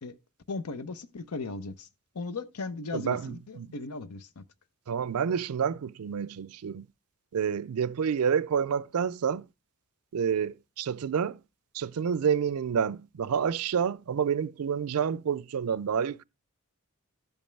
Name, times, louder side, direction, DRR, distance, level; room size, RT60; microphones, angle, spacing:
voice 1, 0.5-1.9 2.1-4.4, left 3 dB, 85° left, 0.7 m, -37 dB
voice 2, 2.9-3.7 4.9-6.9 7.3-9.5 10.1-11.4 11.7-16.2, right 7 dB, 70° right, 0.4 m, -29 dB
13.0 x 5.3 x 3.3 m
head